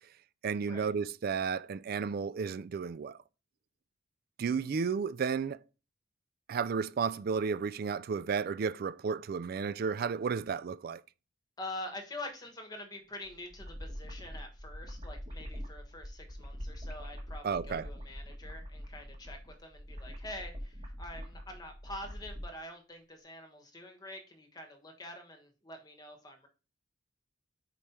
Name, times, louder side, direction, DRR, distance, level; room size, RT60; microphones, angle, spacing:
voice 1, 0.4-3.2 4.4-5.6 6.5-11.0 17.4-17.9, right 5 dB, 50° right, 0.3 m, -33 dB
voice 2, 11.6-26.5, left 1 dB, 20° left, 1.3 m, -46 dB
sound 1, 13.2-22.5, equal, 30° right, 1.5 m, -44 dB
5.3 x 4.8 x 4.3 m
head